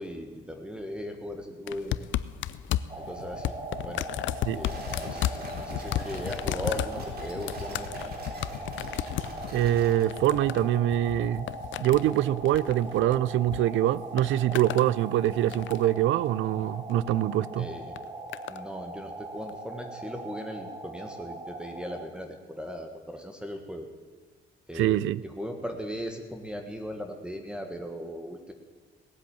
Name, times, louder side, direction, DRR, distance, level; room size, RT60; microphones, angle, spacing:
voice 1, 0.0-2.1 3.0-3.6 3.8-4.0 4.5-8.1 17.6-18.0 18.5-23.9 24.7-28.5, equal, 5° right, 5 dB, 1.5 m, -38 dB
sound 1, 1.7-13.6 13.9-14.9 15.3-16.0 16.9-17.2 18.0-18.6 19.5-19.6, left 12 dB, 70° left, 0.5 m, -34 dB
sound 2, 2.9-22.1, right 2 dB, 25° right, 1.8 m, -41 dB
sound 3, 4.6-10.0, right 2 dB, 50° right, 3.7 m, -43 dB
voice 2, 9.5-11.5 11.8-17.7 24.8-25.2, right 13 dB, 80° right, 20 dB, 0.5 m, -24 dB
18.0 x 8.0 x 8.6 m, 1.5 s
cardioid pair, 90°, 20 cm